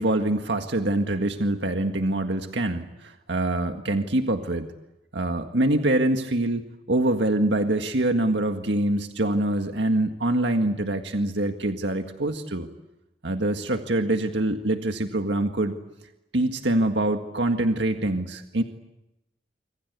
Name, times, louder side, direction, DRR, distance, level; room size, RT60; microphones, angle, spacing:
voice 1, 0.0-4.7 5.1-12.7 13.2-15.8 16.3-18.6, right 1 dB, 75° right, 5 dB, 1.8 m, -25 dB
27.0 x 26.0 x 8.3 m, 0.91 s
head